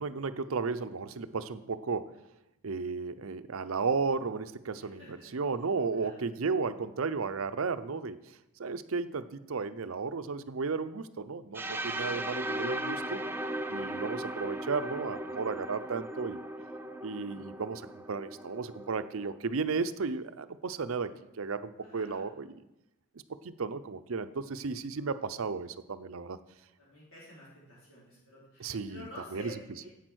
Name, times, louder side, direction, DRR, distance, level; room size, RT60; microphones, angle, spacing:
voice 1, 0.0-2.2 2.6-13.2 13.7-16.4 17.0-22.6 23.4-26.4 28.6-29.5, right 4 dB, 75° right, 12 dB, 0.6 m, -34 dB
voice 2, 4.8-5.3 5.9-6.3 11.7-12.2 21.8-22.3 26.8-29.9, left 1 dB, 70° left, -9 dB, 4.3 m, -50 dB
sound 1, 11.5-19.4, right 1 dB, 10° right, 0.4 m, -37 dB
10.5 x 8.5 x 6.3 m, 0.93 s
head